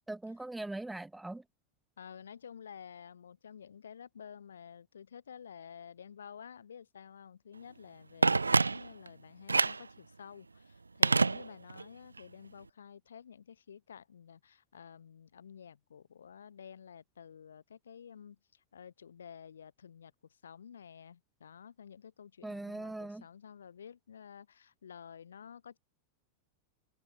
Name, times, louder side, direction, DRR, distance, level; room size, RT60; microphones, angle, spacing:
voice 1, 0.1-1.4 22.4-23.2, right 2 dB, 5° right, 1.0 m, -40 dB
voice 2, 2.0-20.1 20.4-25.8, left 7 dB, 70° left, 6.4 m, -51 dB
Telephone, 8.2-9.1 9.5-9.9 11.0-11.9 12.2-12.3, right 3 dB, 80° right, 0.4 m, -27 dB
figure-of-eight pair, 90°, 0 cm